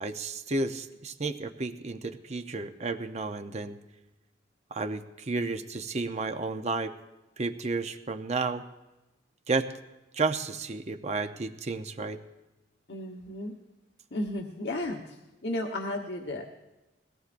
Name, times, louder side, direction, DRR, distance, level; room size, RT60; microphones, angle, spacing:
voice 1, 0.0-3.8 4.7-6.9 7.4-8.6 9.5-9.7 10.1-12.2, right 3 dB, 40° right, 8 dB, 0.7 m, -32 dB
voice 2, 12.9-13.5 14.1-15.2 15.4-16.5, left 1 dB, 75° left, 1 dB, 1.1 m, -33 dB
21.0 x 17.5 x 2.5 m, 1.0 s
head